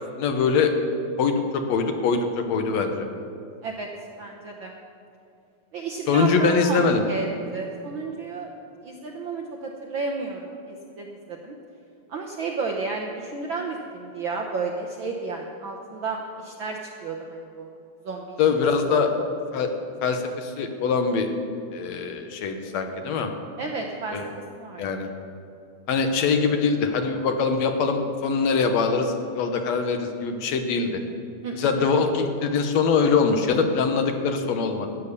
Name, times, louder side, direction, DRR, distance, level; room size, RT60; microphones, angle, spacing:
voice 1, 0.2-0.7 1.2-3.1 6.1-7.0 18.4-19.1 19.5-19.7 20.0-21.3 21.7-23.3 24.1-24.3 24.8-25.1 25.9-31.0 31.6-34.9, left 5 dB, 70° left, 6 dB, 2.1 m, -23 dB
voice 2, 4.2-4.7 5.7-6.8 7.1-8.5 8.8-11.5 12.1-17.7 18.0-18.4 18.9-19.3 23.6-24.2 24.6-24.9 31.4-31.7, right 4 dB, 65° right, 0 dB, 1.2 m, -32 dB
14.0 x 9.1 x 6.7 m, 2.6 s
omnidirectional pair, 3.3 m